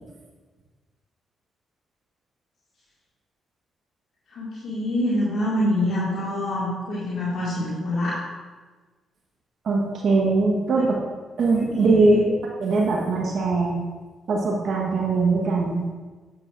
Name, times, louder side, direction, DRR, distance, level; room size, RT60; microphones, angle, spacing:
voice 1, 4.3-8.2 10.8-10.9 11.5-12.2, left 1 dB, 65° left, -8 dB, 1.9 m, -26 dB
voice 2, 9.6-11.0 11.4-13.8 14.3-15.8, right 3 dB, 60° right, -1 dB, 1.1 m, -21 dB
9.1 x 7.2 x 2.5 m, 1.3 s
hypercardioid pair, 50°, 0 cm